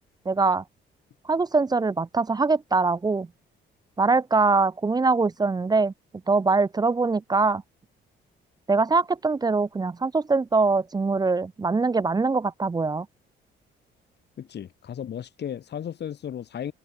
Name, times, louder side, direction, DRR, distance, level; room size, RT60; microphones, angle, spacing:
voice 1, 0.3-0.6 1.2-3.3 4.0-5.9 6.3-7.6 8.7-13.1, right 3 dB, 20° right, 0.5 m, -23 dB
voice 2, 14.4-16.7, left 9 dB, 60° left, 2.6 m, -35 dB
cardioid pair, 90°, 20 cm